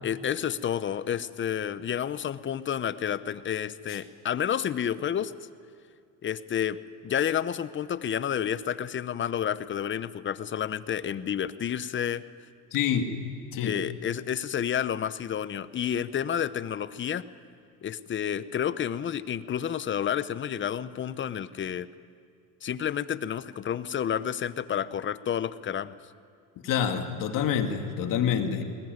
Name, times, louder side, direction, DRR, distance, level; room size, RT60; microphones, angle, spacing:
voice 1, 0.0-5.3 6.2-6.8 7.0-12.2 13.6-17.3 17.8-21.9 22.6-26.0, left 9 dB, 30° left, 15 dB, 0.8 m, -30 dB
voice 2, 12.7-13.1 13.5-13.8 26.6-28.6, left 8 dB, 60° left, 5 dB, 2.4 m, -27 dB
21.0 x 19.0 x 9.4 m, 2.4 s
cardioid pair, 110°, 36 cm